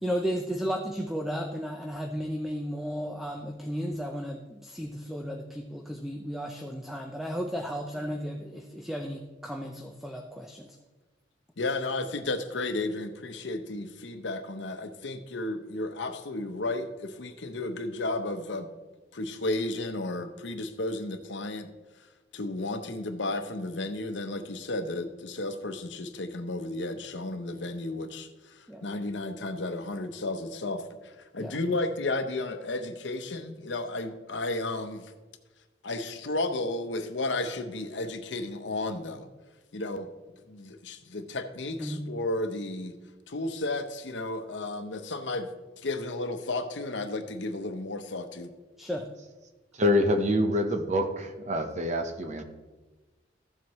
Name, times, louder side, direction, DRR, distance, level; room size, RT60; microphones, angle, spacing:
voice 1, 0.0-10.8 28.7-28.9 31.4-31.6 41.8-42.0 48.8-49.1, equal, ahead, 3 dB, 0.6 m, -34 dB
voice 2, 11.6-18.7 19.1-21.7 22.3-35.1 35.8-39.3 39.7-40.1 40.5-42.9 43.3-45.5 45.8-48.5, left 2 dB, 80° left, 8 dB, 0.9 m, -33 dB
voice 3, 49.7-52.4, left 1 dB, 40° right, 5 dB, 0.9 m, -26 dB
14.5 x 7.5 x 3.1 m, 1.2 s
head